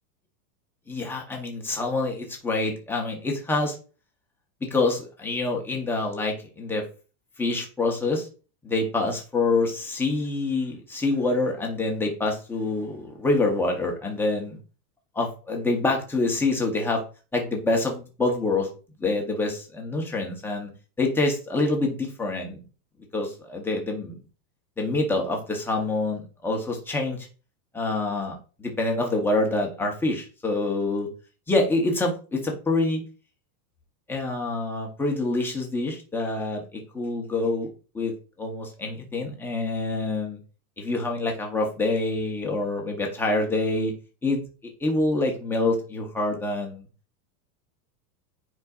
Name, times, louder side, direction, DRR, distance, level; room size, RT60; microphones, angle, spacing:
voice 1, 0.9-3.8 4.6-6.8 7.4-8.3 8.6-14.6 15.1-17.0 17.3-18.7 19.0-20.7 21.0-22.6 23.1-24.2 24.8-27.3 27.7-31.1 31.5-33.0 34.1-38.1 38.4-40.4 40.8-43.9 44.2-44.4 44.8-46.8, left 2 dB, 5° left, 0 dB, 0.6 m, -26 dB
9.4 x 4.8 x 2.3 m, 0.35 s
supercardioid pair, 160°, 49 cm